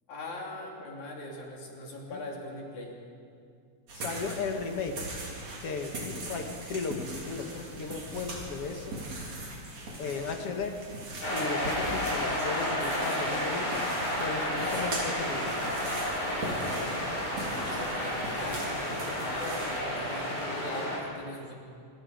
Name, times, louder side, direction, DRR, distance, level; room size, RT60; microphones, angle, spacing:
voice 1, 0.1-2.9 17.4-21.5, left 1 dB, 70° left, -1 dB, 4.7 m, -41 dB
voice 2, 3.9-5.0 5.6-9.0 10.0-10.8 11.3-13.8 14.2-15.8, left 4 dB, 50° left, 4 dB, 2.5 m, -35 dB
sound 1, 3.9-19.8, right 2 dB, 60° right, 4.4 m, -40 dB
sound 2, 11.2-21.0, left 1 dB, 30° left, 6.7 m, -31 dB
26.0 x 22.5 x 5.3 m, 2.4 s
omnidirectional pair, 3.5 m